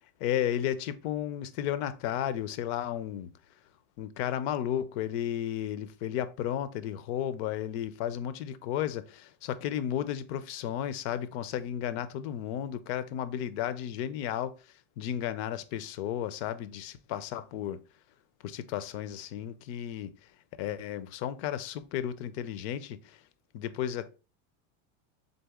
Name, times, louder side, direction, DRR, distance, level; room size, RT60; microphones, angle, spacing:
voice 1, 0.2-3.3 4.0-14.5 15.0-17.8 18.4-20.1 20.6-23.2 23.5-24.1, left 10 dB, 60° left, 0.5 m, -33 dB
4.0 x 3.6 x 3.5 m
cardioid pair, 170°, 38 cm